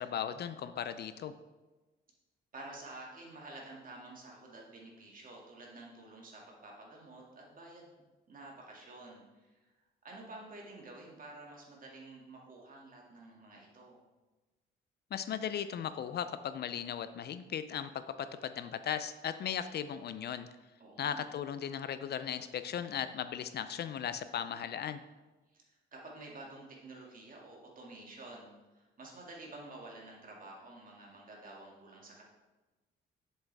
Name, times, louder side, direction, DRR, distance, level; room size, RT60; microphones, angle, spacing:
voice 1, 0.0-1.3 15.1-20.5 21.0-25.0, left 9 dB, 55° left, 12 dB, 0.5 m, -37 dB
voice 2, 2.5-8.0 8.3-9.7 10.0-14.0 20.8-21.3 25.5-32.2, right 2 dB, 45° right, -2 dB, 2.3 m, -50 dB
7.3 x 7.2 x 3.5 m, 1.2 s
cardioid pair, 90°, 20 cm